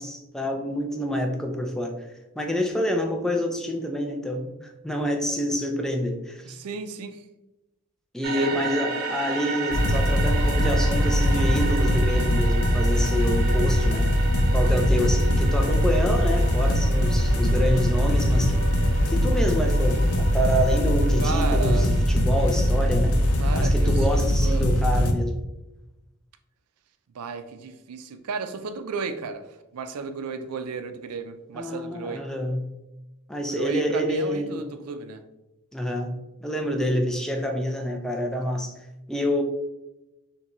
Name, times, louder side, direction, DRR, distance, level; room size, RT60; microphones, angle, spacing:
voice 1, 0.0-2.1 2.4-6.6 8.1-14.1 14.5-18.7 19.1-23.2 23.5-25.4 31.5-32.7 33.3-34.6 35.7-38.8 39.1-39.4, equal, ahead, 3 dB, 0.4 m, -27 dB
voice 2, 6.4-7.2 8.2-8.6 21.2-21.9 23.4-24.7 27.1-29.4 29.7-32.3 33.5-35.2, right 5 dB, 85° right, 9 dB, 0.4 m, -33 dB
sound 1, 8.2-24.2, right 4 dB, 45° right, 0.7 m, -35 dB
sound 2, 9.7-25.1, equal, 90° left, 0.6 m, -21 dB
6.2 x 2.2 x 2.9 m, 0.99 s
head